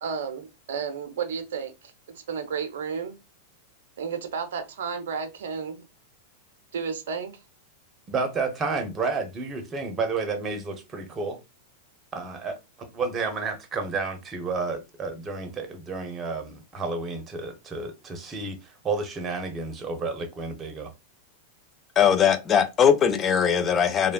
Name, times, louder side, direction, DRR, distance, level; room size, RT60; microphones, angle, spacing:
voice 1, 0.0-3.2 4.0-5.8 6.7-7.4, right 6 dB, 70° right, 0.6 m, -32 dB
voice 2, 8.1-11.4 12.1-20.9, right 4 dB, 25° right, 0.8 m, -31 dB
voice 3, 22.0-24.1, left 7 dB, 30° left, 0.5 m, -20 dB
3.2 x 2.2 x 2.2 m
figure-of-eight pair, 95°, 0 cm